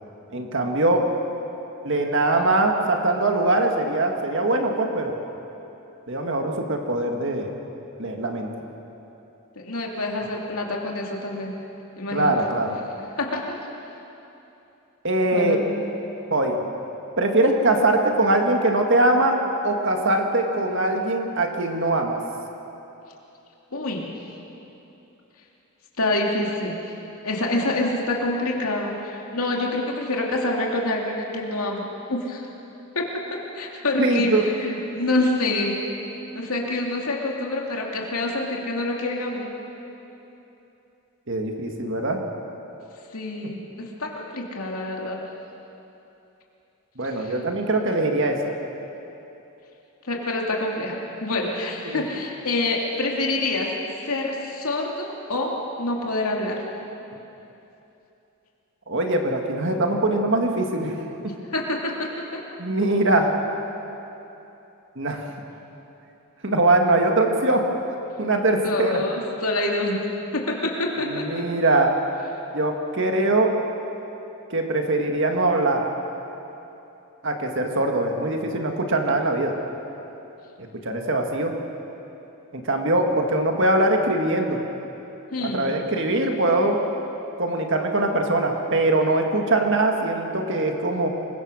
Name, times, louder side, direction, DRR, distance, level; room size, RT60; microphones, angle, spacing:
voice 1, 0.3-1.1 1.8-5.2 6.1-7.5 8.0-8.5 12.1-12.8 15.0-15.6 16.3-16.6 17.2-19.4 19.6-22.2 34.0-34.5 41.3-42.2 47.0-48.5 51.9-52.2 58.9-61.0 62.6-63.3 65.0-65.2 66.4-67.6 68.2-69.0 71.0-71.9 72.5-73.5 74.5-75.9 77.2-79.5 80.6-81.5 82.5-84.6 85.4-86.8 87.4-91.1, right 2 dB, 55° right, 3 dB, 1.9 m, -22 dB
voice 2, 9.6-11.6 12.0-12.3 13.2-13.6 15.3-15.7 23.7-24.1 26.0-26.8 27.2-32.5 32.9-35.8 36.3-39.5 43.1-45.2 47.2-47.4 50.0-56.6 61.5-62.4 68.6-70.0 70.3-71.3 85.3-85.7, left 2 dB, 75° left, -1 dB, 2.6 m, -26 dB
26.5 x 22.0 x 6.4 m, 3.0 s
head